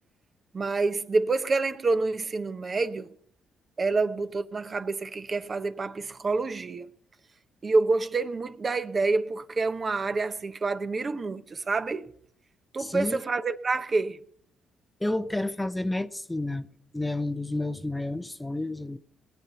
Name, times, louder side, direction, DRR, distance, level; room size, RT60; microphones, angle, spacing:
voice 1, 0.5-3.1 3.8-6.9 7.6-12.1 12.7-14.2, right 3 dB, 35° right, 0.8 m, -27 dB
voice 2, 12.8-13.2 15.0-16.7 16.9-19.0, left 2 dB, 10° left, 0.7 m, -30 dB
20.0 x 8.2 x 5.7 m
cardioid pair, 90°, 0 cm